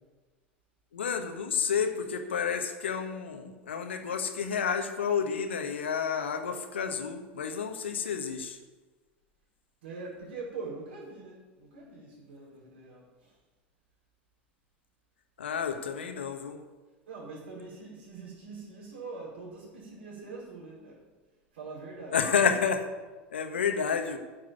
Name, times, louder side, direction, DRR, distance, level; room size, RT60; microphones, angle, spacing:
voice 1, 0.9-8.6 15.4-16.6 22.1-22.8 23.3-24.2, left 6 dB, 75° left, 6 dB, 1.4 m, -30 dB
voice 2, 9.8-13.3 17.1-21.0 21.5-22.4, right 3 dB, 65° right, -5 dB, 5.3 m, -43 dB
10.0 x 7.8 x 9.3 m, 1.3 s
figure-of-eight pair, 80°, 6 cm